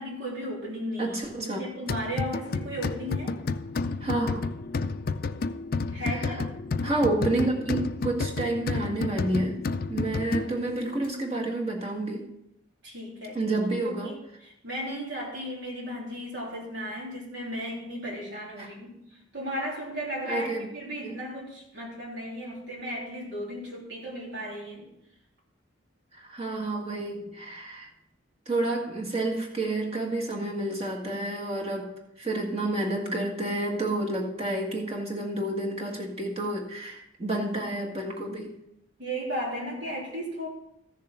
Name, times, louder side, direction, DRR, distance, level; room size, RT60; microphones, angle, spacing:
voice 1, 0.0-3.3 5.9-6.5 12.8-13.4 13.8-14.2 14.6-19.0 19.3-24.9 39.0-40.5, equal, 70° right, -4 dB, 3.4 m, -35 dB
voice 2, 1.0-1.6 4.0-4.5 6.0-6.4 6.8-12.3 13.3-14.2 18.6-18.7 20.2-20.7 21.0-21.2 26.1-27.9 28.5-38.6, right 2 dB, 30° right, -1 dB, 1.8 m, -30 dB
sound 1, 1.9-10.8, left 4 dB, 50° left, 0.4 m, -31 dB
14.5 x 6.9 x 4.5 m, 0.83 s
head